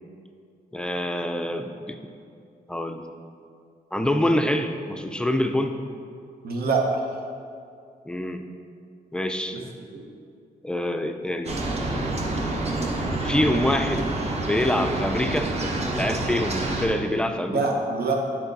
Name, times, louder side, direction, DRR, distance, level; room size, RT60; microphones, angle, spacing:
voice 1, 0.7-2.0 2.7-3.1 3.9-5.8 8.1-8.4 9.1-9.6 10.6-11.6 13.2-14.1 14.4-15.6 15.9-17.6, left 1 dB, 5° left, 6 dB, 0.3 m, -25 dB
voice 2, 6.4-7.0 9.5-9.6 9.9-10.0 14.7-15.0 17.5-18.1, right 3 dB, 85° right, 1 dB, 1.0 m, -25 dB
sound 1, 11.4-16.9, right 2 dB, 40° right, 0.9 m, -27 dB
8.6 x 4.4 x 4.0 m, 2.4 s
wide cardioid pair, 130°, 16 cm